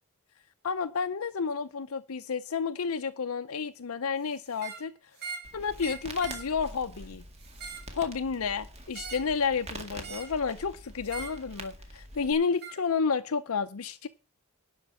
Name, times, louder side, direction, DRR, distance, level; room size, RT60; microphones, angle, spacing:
voice 1, 0.6-4.9 5.5-7.2 7.9-14.1, left 5 dB, 70° left, 0.6 m, -31 dB
sound 1, 4.5-4.9 5.2-5.5 5.8-6.5 7.4-7.9 8.9-9.3 10.0-10.4 11.1-11.4 12.6-12.8, right 6 dB, 50° right, 2.3 m, -41 dB
Crackle, 5.4-12.3, right 1 dB, 30° right, 2.0 m, -45 dB
11.5 x 5.3 x 8.4 m
head